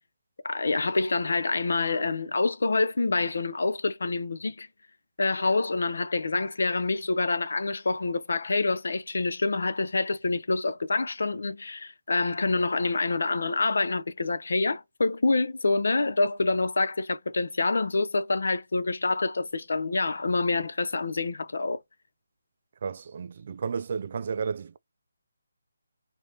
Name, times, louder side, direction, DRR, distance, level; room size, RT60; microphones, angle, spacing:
voice 1, 0.4-4.7 5.2-21.8, left 3 dB, 70° left, 0.5 m, -27 dB
voice 2, 22.8-24.8, right 5 dB, 50° right, 0.3 m, -32 dB
5.1 x 2.1 x 3.0 m
figure-of-eight pair, 155°, 0 cm